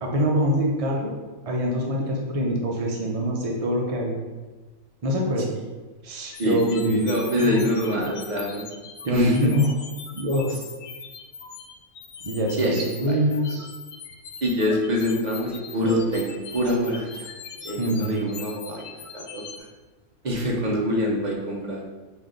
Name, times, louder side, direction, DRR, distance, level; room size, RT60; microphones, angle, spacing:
voice 1, 0.0-1.1 1.5-4.2 5.0-5.5 6.0-7.1 7.4-7.7 9.0-9.7 10.1-10.6 12.2-13.6 17.8-18.1, equal, 65° right, -1 dB, 0.3 m, -24 dB
sound 1, 6.3-19.6, left 5 dB, 65° left, 0.7 m, -41 dB
voice 2, 6.4-8.6 9.1-9.5 12.6-12.8 13.1-13.2 14.4-17.3 17.6-19.4 20.2-21.8, equal, 40° right, -2 dB, 0.8 m, -25 dB
5.4 x 2.6 x 3.7 m, 1.3 s
omnidirectional pair, 1.5 m